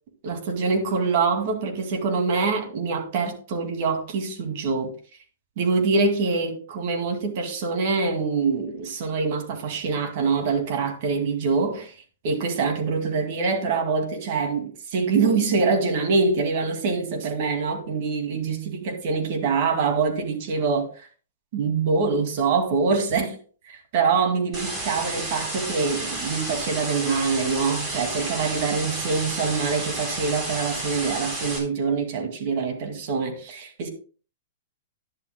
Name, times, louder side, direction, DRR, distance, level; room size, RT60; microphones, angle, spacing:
voice 1, 0.2-4.9 5.6-12.0 12.2-21.1 21.5-23.4 23.7-33.9, right 4 dB, 55° right, 2.3 m, -25 dB
sound 1, 24.5-31.6, right 1 dB, 25° right, 3.7 m, -31 dB
11.5 x 10.5 x 2.2 m
hypercardioid pair, 140°, 0 cm